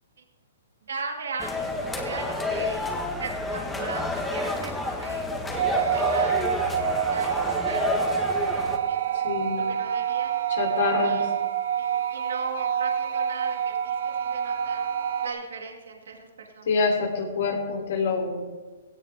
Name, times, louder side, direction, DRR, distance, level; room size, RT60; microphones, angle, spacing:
voice 1, 0.9-2.8 3.2-5.3 5.8-9.2 9.6-10.4 11.0-11.3 11.8-14.8 15.2-16.7, right 5 dB, 85° right, 2 dB, 2.1 m, -38 dB
sound 1, 1.4-8.8, left 2 dB, 5° left, 1.6 m, -29 dB
sound 2, 5.5-15.3, right 9 dB, 65° right, 1.0 m, -27 dB
voice 2, 9.1-9.7 10.5-11.2 16.7-18.4, left 4 dB, 70° left, 0 dB, 3.5 m, -26 dB
16.5 x 16.5 x 3.6 m, 1.3 s
hypercardioid pair, 150°, 0 cm